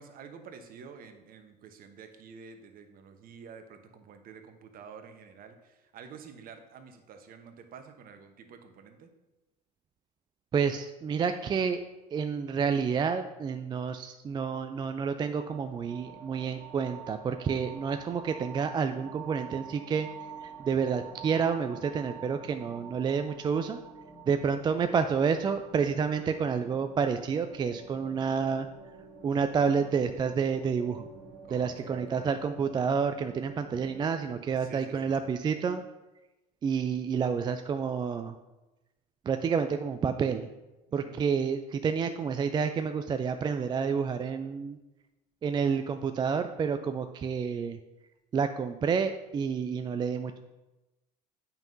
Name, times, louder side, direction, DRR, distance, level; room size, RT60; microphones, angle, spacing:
voice 1, 0.0-9.1 31.4-32.2 34.6-35.3 40.9-41.2, right 6 dB, 45° right, 7 dB, 0.9 m, -49 dB
voice 2, 10.5-11.8 12.1-20.1 20.4-23.8 24.3-28.7 29.2-31.1 31.5-35.8 36.6-38.3 39.3-40.5 40.9-44.8 45.4-47.8 48.3-50.4, right 6 dB, 20° right, 8 dB, 0.3 m, -29 dB
sound 1, 15.5-34.0, right 6 dB, 60° right, 1.6 m, -48 dB
8.8 x 5.5 x 2.6 m, 1.0 s
hypercardioid pair, 75°, 21 cm